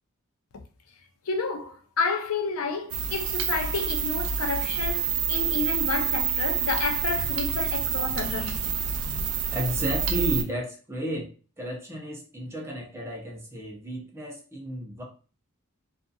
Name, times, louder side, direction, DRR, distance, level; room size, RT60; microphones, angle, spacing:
voice 1, 1.3-9.2, left 4 dB, 80° left, 0.5 m, -30 dB
sound 1, 2.9-10.4, right 7 dB, 85° right, 0.4 m, -28 dB
voice 2, 9.5-11.3 11.6-15.0, equal, 15° right, 0.6 m, -32 dB
2.7 x 2.5 x 2.3 m
head